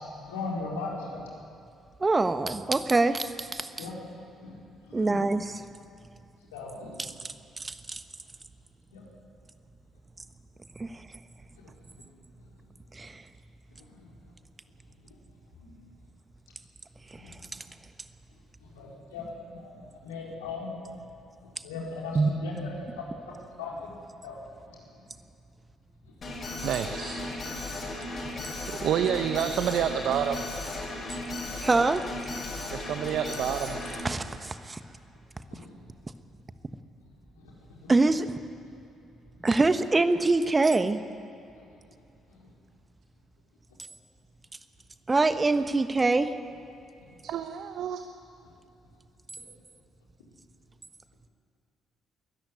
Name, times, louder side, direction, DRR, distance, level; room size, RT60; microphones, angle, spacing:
voice 1, 0.2-1.3 3.8-4.0 4.4-4.5 4.8-5.2 6.5-6.9 8.9-9.0 11.6-12.0 14.0-14.1 15.6-15.7 17.1-17.3 18.6-21.0 21.6-23.9 24.2-24.4 28.1-28.4 35.5-35.7 37.4-37.9 47.1-47.2, left 3 dB, 85° left, -3 dB, 4.4 m, -39 dB
voice 2, 2.0-3.7 4.9-5.6 7.0-8.0 10.8-11.1 12.9-13.2 17.1-17.4 22.1-22.4 28.1-28.2 31.6-32.1 33.9-34.8 37.9-38.3 39.4-41.0 45.1-46.3, right 3 dB, 30° right, 10 dB, 1.4 m, -25 dB
Alarm, 26.2-34.0, left 2 dB, 45° left, 6.8 m, -36 dB
voice 3, 26.6-27.2 28.8-30.4 32.7-33.8 47.2-48.0, right 9 dB, 65° right, 8 dB, 0.9 m, -28 dB
22.0 x 14.0 x 9.5 m, 2.5 s
hypercardioid pair, 45°, 0 cm